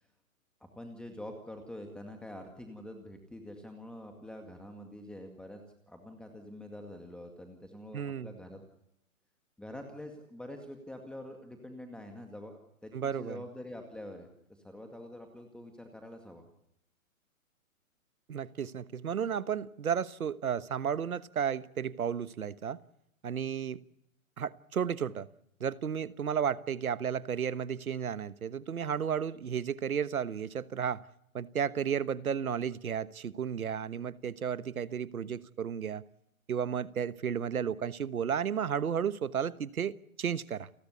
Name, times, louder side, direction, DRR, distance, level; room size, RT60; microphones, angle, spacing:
voice 1, 0.6-5.6 5.9-8.6 9.6-16.5, left 1 dB, ahead, 3 dB, 2.1 m, -46 dB
voice 2, 7.9-8.3 12.9-13.4 18.3-22.8 23.2-23.8 24.4-25.3 25.6-31.0 31.3-36.0 36.5-40.7, right 8 dB, 85° right, 16 dB, 1.3 m, -33 dB
29.5 x 13.5 x 8.1 m, 0.77 s
hypercardioid pair, 140°, 42 cm